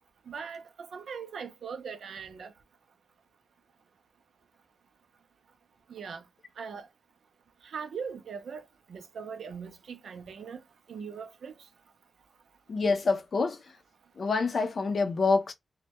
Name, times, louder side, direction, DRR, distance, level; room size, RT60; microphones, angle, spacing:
voice 1, 0.3-2.5 5.9-6.2 6.6-6.9 7.6-10.6 10.9-11.6, right 6 dB, 85° right, 0.4 m, -40 dB
voice 2, 12.7-13.6 14.2-15.5, left 4 dB, 60° left, 0.4 m, -26 dB
2.1 x 2.1 x 2.8 m
wide cardioid pair, 95°, 0 cm